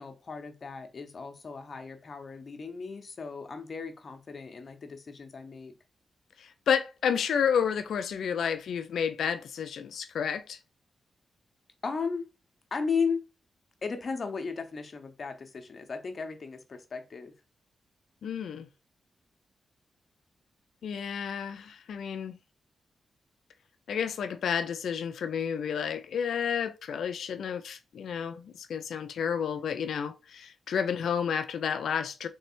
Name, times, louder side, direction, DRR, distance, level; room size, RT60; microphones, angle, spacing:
voice 1, 0.0-5.8 11.8-12.3 12.7-13.2 13.8-17.3, left 5 dB, 55° left, 0.9 m, -35 dB
voice 2, 6.4-10.6 18.2-18.7 20.8-22.4 23.9-32.3, left 7 dB, 85° left, 0.5 m, -31 dB
3.4 x 3.3 x 4.4 m
cardioid pair, 70°, 0 cm